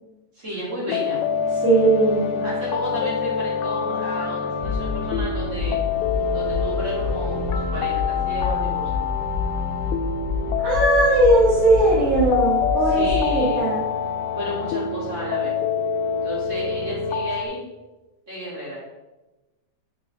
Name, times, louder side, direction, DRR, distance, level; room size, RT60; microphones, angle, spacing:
voice 1, 0.3-1.2 2.4-5.8 6.3-9.0 12.8-13.7 14.3-15.5 16.2-17.7 18.3-18.8, equal, 20° right, -7 dB, 2.5 m, -32 dB
sound 1, 0.9-17.5, left 6 dB, 85° left, 2.2 m, -26 dB
voice 2, 1.6-2.4 10.6-13.8, right 2 dB, 65° right, -12 dB, 4.5 m, -19 dB
sound 2, 4.6-13.6, left 5 dB, 55° left, 3.2 m, -28 dB
9.6 x 5.5 x 3.8 m, 1.1 s
omnidirectional pair, 5.0 m